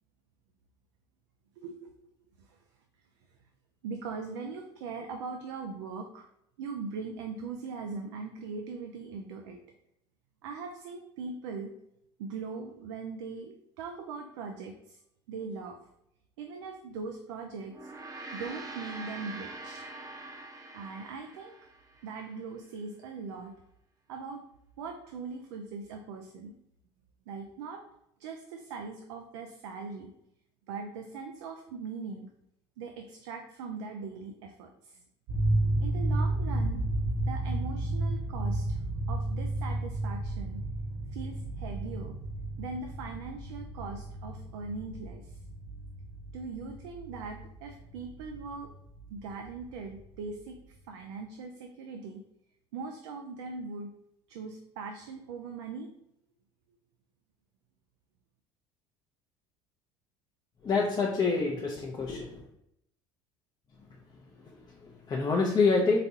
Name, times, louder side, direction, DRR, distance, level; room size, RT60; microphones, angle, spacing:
voice 1, 1.6-2.0 2.4-2.6 3.8-6.3 6.6-9.6 10.4-11.7 12.2-15.0 15.3-15.8 16.4-17.9 18.3-19.8 20.7-21.6 22.0-23.5 24.1-24.4 24.8-26.6 27.3-27.8 28.2-30.1 30.7-32.3 32.8-35.0 35.8-36.8 37.3-38.8 39.1-40.6 41.1-42.1 42.6-45.4 46.3-48.7 49.1-52.2 52.7-53.9 54.3-55.9, right 4 dB, 80° right, 4 dB, 0.4 m, -40 dB
Gong, 17.7-22.3, right 2 dB, 25° right, 0.7 m, -44 dB
sound 1, 35.3-50.1, right 1 dB, 60° right, 1.1 m, -33 dB
voice 2, 60.6-62.4 64.4-66.0, left 4 dB, 30° left, -2 dB, 0.6 m, -27 dB
4.0 x 2.2 x 2.7 m, 0.79 s
hypercardioid pair, 75°, 14 cm